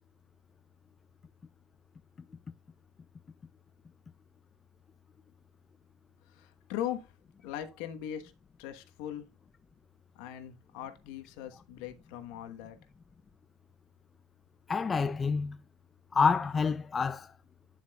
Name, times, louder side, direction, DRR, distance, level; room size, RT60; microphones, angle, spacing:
voice 1, 6.3-7.1 7.4-8.3 8.6-9.3 10.1-12.8, left 11 dB, 75° left, 1.2 m, -40 dB
voice 2, 14.7-15.6 16.1-17.3, left 5 dB, 20° left, 0.3 m, -28 dB
9.6 x 7.1 x 2.3 m
cardioid pair, 140°, 0 cm